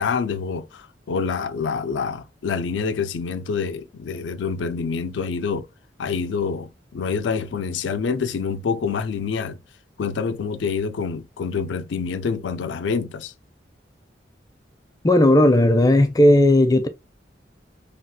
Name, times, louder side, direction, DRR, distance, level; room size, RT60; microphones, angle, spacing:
voice 1, 0.0-5.7 6.0-9.6 10.0-13.3, left 5 dB, 80° left, 0.4 m, -26 dB
voice 2, 15.0-16.9, left 1 dB, 20° left, 0.4 m, -15 dB
3.4 x 2.3 x 2.7 m
head